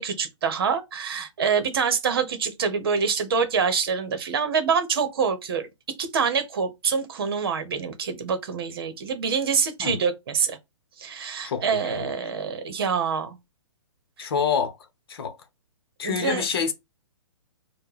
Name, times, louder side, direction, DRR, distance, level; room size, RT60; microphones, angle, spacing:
voice 1, 0.0-5.7 6.0-10.6 11.0-13.4 16.0-16.4, right 6 dB, 50° right, 0.9 m, -26 dB
voice 2, 11.4-12.1 14.2-14.8 15.1-15.4 16.0-16.7, left 6 dB, 50° left, 0.9 m, -27 dB
4.5 x 2.2 x 4.8 m
figure-of-eight pair, 120°, 16 cm